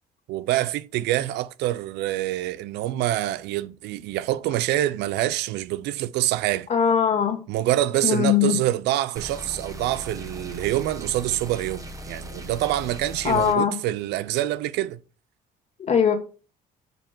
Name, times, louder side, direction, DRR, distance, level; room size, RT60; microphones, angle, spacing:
voice 1, 0.3-6.7 7.5-15.0, right 14 dB, 85° right, 0.5 m, -26 dB
voice 2, 6.7-7.4 8.0-8.6 13.2-13.8 15.8-16.2, left 8 dB, 40° left, 2.3 m, -20 dB
sound 1, 9.2-13.6, equal, 20° right, 1.2 m, -38 dB
6.3 x 5.0 x 6.9 m
cardioid pair, 110°, 17 cm